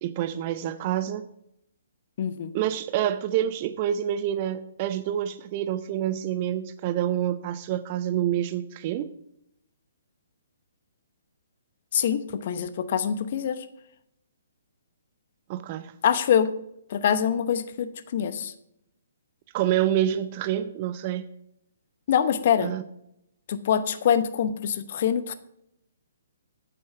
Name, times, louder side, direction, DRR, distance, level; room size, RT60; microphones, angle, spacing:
voice 1, 0.0-1.3 2.5-9.1 15.5-15.9 19.5-21.2 22.6-22.8, right 11 dB, 35° right, 12 dB, 0.5 m, -27 dB
voice 2, 2.2-2.5 11.9-13.6 16.0-16.5 16.9-18.5 22.1-22.7 23.5-25.3, left 8 dB, 50° left, 12 dB, 0.9 m, -24 dB
8.9 x 7.6 x 5.7 m, 0.78 s
figure-of-eight pair, 130°, 0 cm